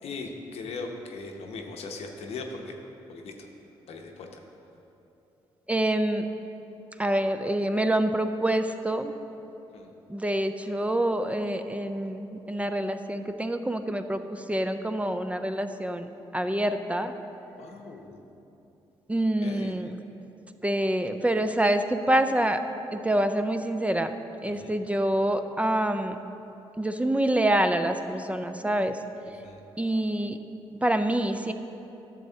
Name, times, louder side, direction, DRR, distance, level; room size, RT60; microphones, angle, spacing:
voice 1, 0.0-2.7 3.1-3.5 3.9-4.4 9.7-9.9 17.6-18.2 19.4-19.8 24.6-24.7 29.4-29.6, left 3 dB, 75° left, 2 dB, 0.8 m, -39 dB
voice 2, 5.7-6.2 7.0-9.1 10.1-16.1 16.3-17.1 19.1-19.9 20.6-22.6 22.9-24.1 24.4-26.2 26.8-29.0 29.8-30.4 30.8-31.5, right 1 dB, 10° right, 8 dB, 0.4 m, -26 dB
11.0 x 6.8 x 2.8 m, 3.0 s
supercardioid pair, 60°, 11 cm